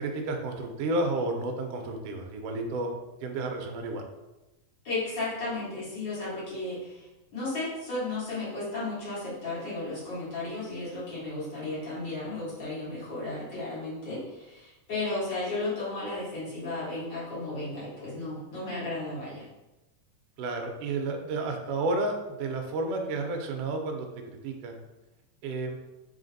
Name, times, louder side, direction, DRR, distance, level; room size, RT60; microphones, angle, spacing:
voice 1, 0.0-2.9 3.2-4.0 20.4-24.8 25.4-25.7, right 2 dB, 85° right, 3 dB, 1.4 m, -31 dB
voice 2, 4.8-7.1 7.3-19.4, left 2 dB, 50° left, -9 dB, 1.5 m, -34 dB
4.1 x 3.2 x 2.6 m, 0.99 s
omnidirectional pair, 3.3 m